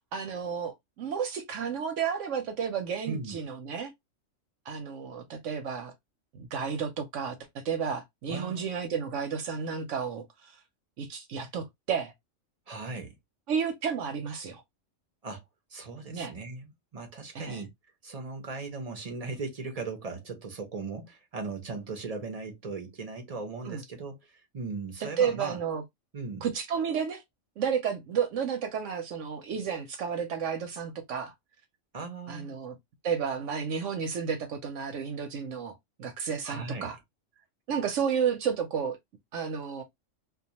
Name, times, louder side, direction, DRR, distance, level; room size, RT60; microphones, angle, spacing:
voice 1, 0.1-3.9 4.7-5.9 6.3-10.5 11.0-12.1 13.5-14.6 16.1-16.3 17.3-17.6 23.6-23.8 25.0-25.8 26.4-27.2 27.6-31.3 32.3-32.8 33.0-37.0 37.7-39.0 39.3-39.8, right 7 dB, 75° right, 0.9 m, -32 dB
voice 2, 3.1-3.4 8.3-8.7 12.7-13.1 15.2-15.4 15.7-17.7 18.0-25.6 26.1-26.5 31.9-32.5 36.4-36.9, right 3 dB, 40° right, 0.5 m, -38 dB
2.3 x 2.3 x 2.7 m
omnidirectional pair, 1.4 m